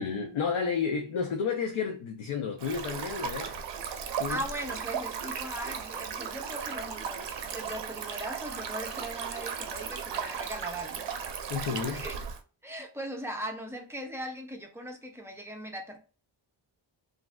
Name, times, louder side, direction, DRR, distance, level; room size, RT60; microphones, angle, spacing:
voice 1, 0.0-3.6 4.2-4.4 11.5-12.1, left 6 dB, 80° left, 0.6 m, -31 dB
Stream, 2.6-12.4, right 7 dB, 65° right, 0.6 m, -36 dB
voice 2, 4.1-11.1 11.9-12.1 12.6-16.0, right 1 dB, 5° right, 0.6 m, -39 dB
3.1 x 2.5 x 2.2 m
wide cardioid pair, 130°, 47 cm